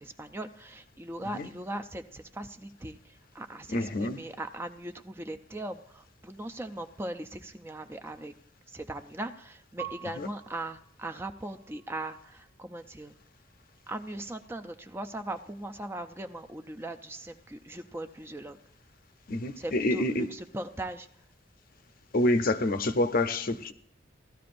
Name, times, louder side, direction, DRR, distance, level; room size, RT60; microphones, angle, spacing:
voice 1, 0.0-8.3 8.7-13.2 13.9-18.6 19.6-21.1, right 1 dB, 10° right, 0.4 m, -39 dB
voice 2, 3.7-4.2 10.2-10.3 19.3-20.3 22.1-23.7, left 1 dB, 50° left, 0.6 m, -27 dB
Piano, 9.8-12.5 13.2-13.9, right 10 dB, 55° right, 1.4 m, -48 dB
17.0 x 12.5 x 2.6 m
head